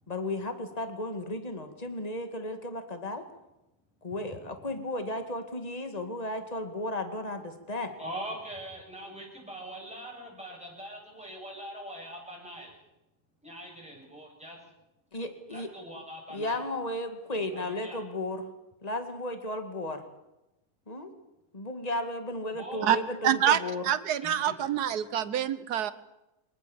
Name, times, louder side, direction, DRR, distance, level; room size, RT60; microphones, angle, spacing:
voice 1, 0.1-3.2 4.0-7.9 15.1-15.7 16.3-18.5 18.8-20.0 20.9-21.1 21.5-23.8, left 1 dB, 25° left, 7 dB, 2.2 m, -34 dB
voice 2, 8.0-12.7 13.4-14.6 15.5-16.6 17.5-18.0 22.5-23.0 24.2-24.6, right 1 dB, 5° right, -2 dB, 7.9 m, -42 dB
voice 3, 23.2-23.6 23.8-25.9, right 10 dB, 80° right, 14 dB, 1.6 m, -26 dB
24.0 x 19.5 x 7.2 m, 0.94 s
omnidirectional pair, 1.7 m